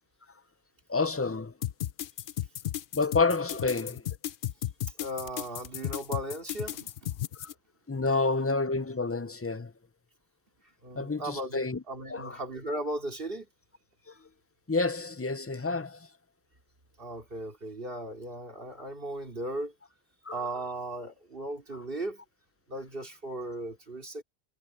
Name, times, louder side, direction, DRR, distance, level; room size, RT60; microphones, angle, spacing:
voice 1, 0.9-1.5 2.9-4.0 7.9-9.7 11.0-11.8 12.1-12.4 14.7-16.0 20.3-20.5, left 3 dB, 20° left, 0.4 m, -29 dB
sound 1, 1.6-7.5, left 12 dB, 60° left, 0.7 m, -34 dB
voice 2, 5.0-6.9 10.8-13.5 17.0-19.7 20.3-22.2 22.7-24.2, right 1 dB, 55° right, 3.2 m, -37 dB
omnidirectional pair, 1.1 m